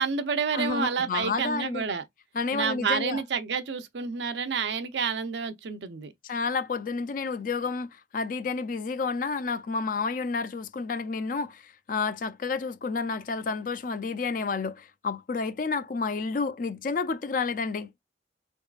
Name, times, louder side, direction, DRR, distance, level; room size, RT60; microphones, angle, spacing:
voice 1, 0.0-2.0 2.5-6.1, right 5 dB, 75° right, 0.6 m, -29 dB
voice 2, 0.5-1.9 2.3-3.2 6.2-7.9 8.1-17.9, left 4 dB, 50° left, 0.4 m, -30 dB
3.9 x 3.5 x 2.4 m
head